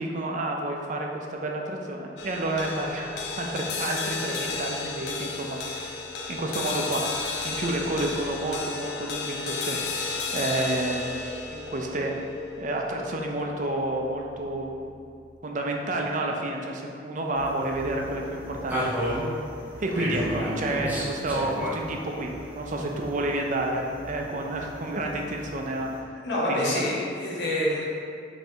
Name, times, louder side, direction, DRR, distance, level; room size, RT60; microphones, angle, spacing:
voice 1, 0.0-5.9 6.3-7.0 7.4-9.8 10.3-11.1 11.5-12.1 12.6-14.9 15.4-19.2 19.8-25.9 26.5-26.8, right 1 dB, 45° right, 1 dB, 0.5 m, -30 dB
sound 1, 2.2-14.7, left 4 dB, 70° left, 0.5 m, -34 dB
sound 2, 17.3-26.0, equal, 10° right, 0.7 m, -34 dB
voice 2, 26.1-27.8, left 1 dB, 90° left, -5 dB, 1.1 m, -27 dB
5.5 x 3.2 x 2.8 m, 2.4 s
head